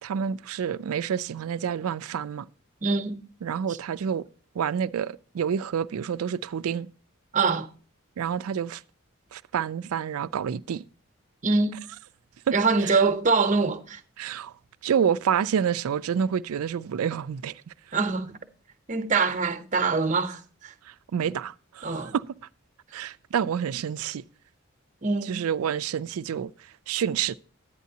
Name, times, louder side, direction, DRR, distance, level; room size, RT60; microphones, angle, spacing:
voice 1, 0.0-2.5 3.4-4.2 4.5-6.9 8.2-8.8 9.3-10.8 12.5-12.6 12.8-12.9 14.2-14.5 14.8-17.7 20.9-22.2 22.9-24.2 25.3-26.5 26.9-27.4, right 8 dB, 85° right, 0.4 m, -28 dB
voice 2, 2.8-3.2 7.3-7.7 11.4-11.8 12.5-14.0 17.9-18.4 18.9-20.7 21.8-22.1 25.0-25.5, right 4 dB, 35° right, 0.8 m, -24 dB
11.0 x 9.3 x 2.8 m
head